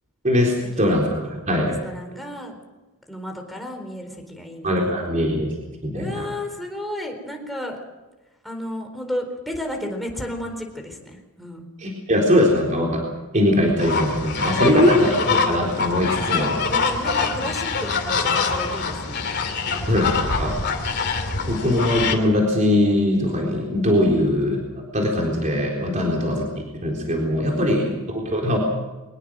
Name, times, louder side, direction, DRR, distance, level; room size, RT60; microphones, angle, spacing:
voice 1, 0.2-1.8 4.6-5.5 5.8-6.3 11.8-13.0 13.3-16.5 19.9-20.6 21.5-24.6 24.9-26.4 26.8-28.6, left 1 dB, 35° right, -1 dB, 3.9 m, -21 dB
voice 2, 1.6-2.6 3.1-5.1 5.9-7.8 8.4-11.7 14.5-15.2 16.3-19.3 19.6-19.9 24.1-24.3 26.0-26.5 27.5-27.9, left 1 dB, ahead, 2 dB, 4.1 m, -33 dB
sound 1, 13.8-22.2, left 4 dB, 50° left, 2.8 m, -24 dB
24.0 x 19.5 x 6.4 m, 1.2 s
head